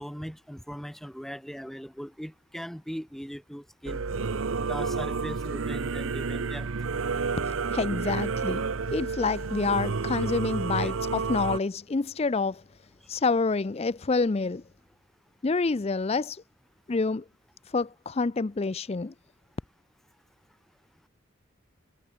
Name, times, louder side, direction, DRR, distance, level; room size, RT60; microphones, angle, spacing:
voice 1, 0.0-4.0 4.7-6.7 10.8-10.9, equal, ahead, 3.3 m, -39 dB
Singing / Musical instrument, 3.9-11.6, right 4 dB, 75° right, 0.7 m, -30 dB
voice 2, 7.5-12.6 13.1-14.6 15.4-16.4 16.9-17.2 17.7-19.1, left 4 dB, 30° left, 0.4 m, -28 dB
head